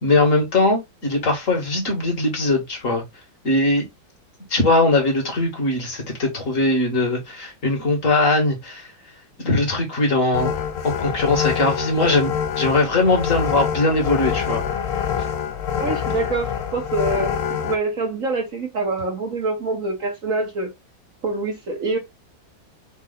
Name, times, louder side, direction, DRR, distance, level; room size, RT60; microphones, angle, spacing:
voice 1, 0.0-3.0 3.4-3.9 4.5-8.9 9.4-10.5 11.0-14.7, left 2 dB, 40° left, 1.9 m, -20 dB
sound 1, 10.3-17.7, left 8 dB, 80° left, 0.7 m, -25 dB
voice 2, 15.8-20.7 21.2-22.0, right 3 dB, 45° right, 1.4 m, -25 dB
4.4 x 2.7 x 3.9 m
omnidirectional pair, 2.1 m